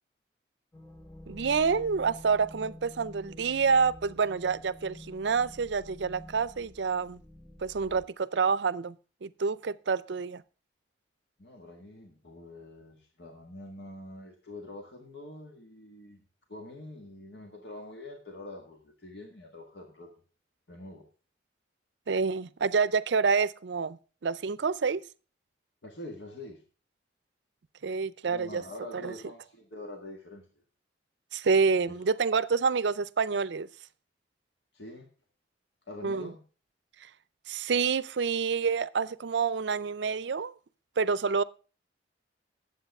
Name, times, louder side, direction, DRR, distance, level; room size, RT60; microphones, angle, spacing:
sound 1, 0.7-8.1, left 1 dB, 15° left, 0.7 m, -49 dB
voice 1, 1.3-7.2 7.6-8.9 9.2-10.4 22.1-24.0 24.2-25.0 27.8-28.6 28.9-29.1 31.3-33.7 36.0-36.3 37.5-40.5 41.0-41.4, right 5 dB, 70° right, 0.5 m, -28 dB
voice 2, 11.4-16.2 16.5-20.1 20.7-21.1 25.8-26.6 28.2-30.4 34.7-35.1 35.9-36.4, left 1 dB, 65° left, 1.7 m, -45 dB
10.5 x 7.8 x 5.3 m
head